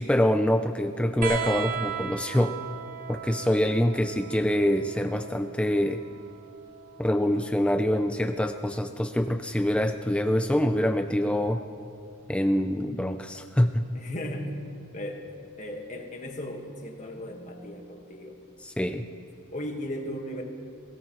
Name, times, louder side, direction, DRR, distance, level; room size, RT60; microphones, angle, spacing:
voice 1, 0.0-2.5 3.1-6.0 7.0-11.6 12.3-13.8 18.6-19.0, left 1 dB, 5° left, 7 dB, 0.4 m, -25 dB
sound 1, 1.2-8.3 9.7-10.5 11.8-11.9, right 8 dB, 40° right, 1.1 m, -38 dB
voice 2, 13.9-14.5 14.9-15.2 15.6-18.4 19.5-20.4, left 1 dB, 35° left, 2 dB, 1.5 m, -36 dB
22.0 x 17.5 x 3.1 m, 2.4 s
head